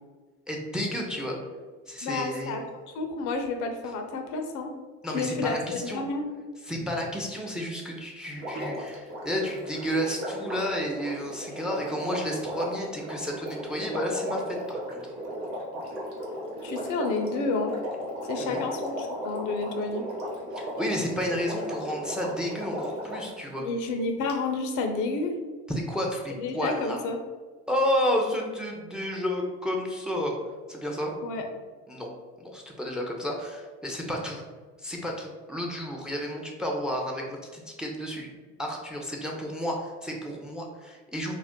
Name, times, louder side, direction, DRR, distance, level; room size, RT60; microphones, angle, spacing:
voice 1, 0.5-1.4 1.9-2.6 5.0-6.0 6.6-15.1 18.4-18.6 20.5-23.7 25.7-27.0 27.7-30.3 30.7-31.1 31.9-32.1 32.4-34.4 34.8-38.3 38.6-41.4, equal, ahead, 1 dB, 0.5 m, -31 dB
voice 2, 2.0-2.6 2.9-4.7 5.1-5.5 5.8-6.2 16.6-17.7 18.2-20.0 23.6-25.3 26.4-27.2 31.2-31.4, left 3 dB, 65° left, 4 dB, 0.6 m, -30 dB
Water, 8.4-23.4 24.3-24.4, equal, 85° right, 0.8 m, -36 dB
2.5 x 2.1 x 3.5 m, 1.4 s
supercardioid pair, 80°, 32 cm